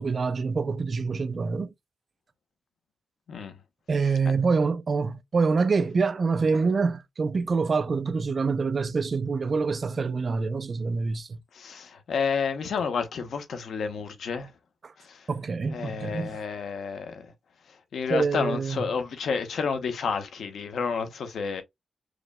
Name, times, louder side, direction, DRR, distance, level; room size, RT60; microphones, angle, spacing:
voice 1, 0.0-1.7 3.9-11.4 14.8-14.9 15.3-16.4 18.1-18.8, right 4 dB, 40° right, 0.4 m, -26 dB
voice 2, 11.5-14.5 15.0-15.3 15.7-17.3 17.7-21.6, left 5 dB, 85° left, 0.9 m, -30 dB
4.8 x 3.0 x 2.2 m
wide cardioid pair, 165°, 0 cm